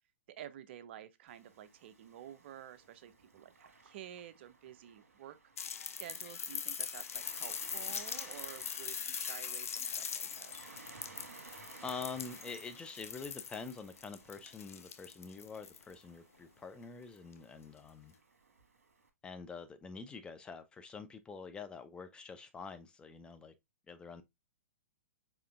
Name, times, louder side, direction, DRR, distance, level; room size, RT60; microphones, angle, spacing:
voice 1, 0.3-5.4 5.9-10.5, right 11 dB, 50° right, 0.5 m, -51 dB
Waves surf, 1.3-19.1, right 4 dB, 75° right, 1.2 m, -58 dB
sound 1, 5.6-15.9 17.3-17.4, left 7 dB, 70° left, 0.5 m, -42 dB
voice 2, 11.8-18.1 19.2-23.5 23.9-24.2, left 5 dB, 10° left, 0.4 m, -46 dB
4.9 x 3.3 x 2.4 m
figure-of-eight pair, 120°, 8 cm